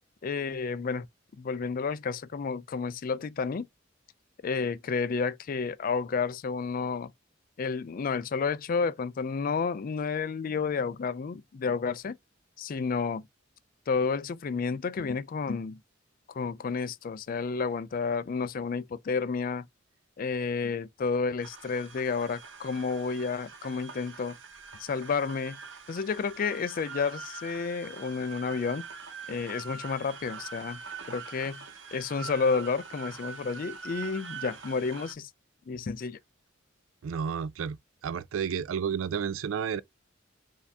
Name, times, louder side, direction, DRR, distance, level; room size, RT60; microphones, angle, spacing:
voice 1, 0.2-1.1 1.4-3.7 4.4-7.1 7.6-12.2 12.6-13.3 13.9-15.8 16.3-19.7 20.2-24.4 24.8-25.6 25.9-28.8 29.3-30.8 31.1-31.6 31.9-35.3 35.7-36.2, left 5 dB, 45° left, 0.4 m, -31 dB
sound 1, 21.4-35.1, right 5 dB, 70° right, 1.0 m, -44 dB
voice 2, 37.0-37.8 38.0-39.8, right 7 dB, 90° right, 0.4 m, -31 dB
4.6 x 2.7 x 3.4 m
head